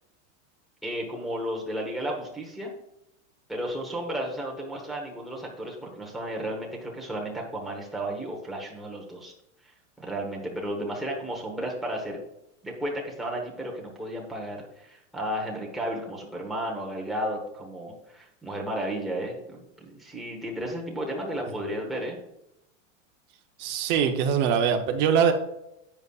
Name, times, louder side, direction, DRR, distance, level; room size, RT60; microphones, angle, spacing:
voice 1, 0.8-2.7 3.5-9.3 10.0-12.2 12.6-22.2, right 1 dB, ahead, -3 dB, 1.1 m, -33 dB
voice 2, 23.6-25.3, right 7 dB, 30° right, 5 dB, 0.7 m, -22 dB
11.0 x 8.1 x 2.4 m, 0.85 s
supercardioid pair, 170°, 39 cm